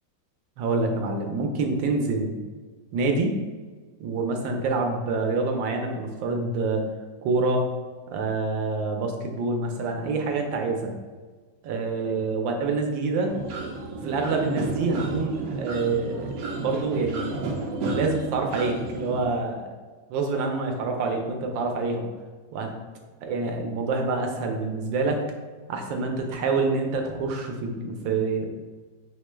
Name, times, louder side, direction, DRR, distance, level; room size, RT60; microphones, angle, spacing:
voice 1, 0.6-2.3 2.9-3.3 4.0-6.8 7.2-7.7 8.1-10.9 11.6-13.3 14.0-17.3 17.9-19.7 20.1-22.1 22.5-22.7 23.2-25.2 25.7-28.5, right 3 dB, 85° right, 3 dB, 1.4 m, -26 dB
sound 1, 13.3-19.2, right 3 dB, 65° right, 0.9 m, -31 dB
5.0 x 2.2 x 3.0 m, 1.4 s
omnidirectional pair, 2.0 m